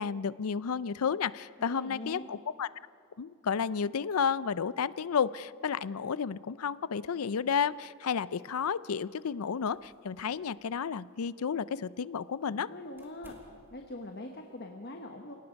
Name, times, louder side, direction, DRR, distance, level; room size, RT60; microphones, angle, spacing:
voice 1, 0.0-2.7 3.2-12.7, left 6 dB, 80° left, 18 dB, 0.5 m, -32 dB
voice 2, 1.6-2.2 12.5-13.3 13.7-15.4, left 1 dB, 50° left, 3 dB, 1.3 m, -42 dB
sound 1, 7.6-14.7, equal, 10° right, 2.4 m, -63 dB
29.5 x 18.0 x 5.3 m, 2.4 s
head